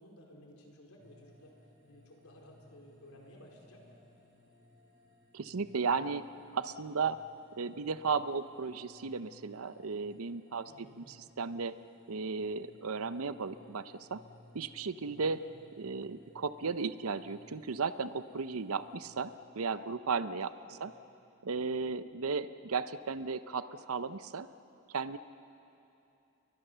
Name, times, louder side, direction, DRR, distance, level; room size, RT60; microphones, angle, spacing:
voice 1, 0.0-1.5 1.9-4.0 10.7-11.0 15.3-15.5 20.4-21.0, equal, 85° left, 0 dB, 4.4 m, -56 dB
sound 1, 1.0-19.4, left 1 dB, 60° right, 5.9 m, -62 dB
voice 2, 5.3-6.3 6.5-7.2 7.6-10.7 11.0-11.1 11.4-11.7 12.1-14.2 14.5-15.4 15.8-20.5 20.8-20.9 21.4-24.5 24.9-25.2, right 5 dB, 90° right, 13 dB, 0.7 m, -35 dB
29.5 x 22.5 x 6.9 m, 2.8 s
head